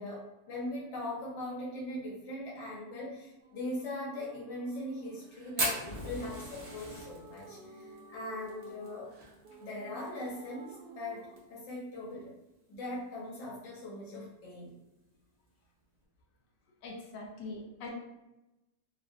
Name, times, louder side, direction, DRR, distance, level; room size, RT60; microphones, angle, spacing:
voice 1, 0.0-9.1 9.6-12.3 12.7-14.7, left 1 dB, 50° left, -6 dB, 1.1 m, -40 dB
sound 1, 3.4-11.4, right 2 dB, 80° right, 1.1 m, -52 dB
Fire, 5.6-10.1 10.3-10.4 10.7-10.8 11.2-11.6 12.1-12.2 13.2-13.4, right 1 dB, 45° right, 0.6 m, -37 dB
voice 2, 16.8-17.9, left 2 dB, 85° left, -1 dB, 1.2 m, -42 dB
3.2 x 2.3 x 2.6 m, 0.98 s
omnidirectional pair, 1.8 m